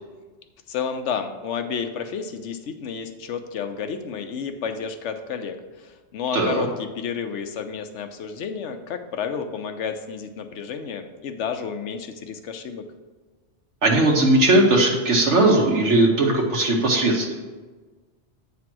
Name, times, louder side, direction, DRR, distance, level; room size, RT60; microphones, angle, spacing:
voice 1, 0.7-12.8, left 6 dB, 75° left, 7 dB, 1.0 m, -31 dB
voice 2, 6.3-6.6 13.8-17.3, right 2 dB, 70° right, -1 dB, 1.3 m, -18 dB
8.7 x 3.4 x 6.0 m, 1.3 s
omnidirectional pair, 1.2 m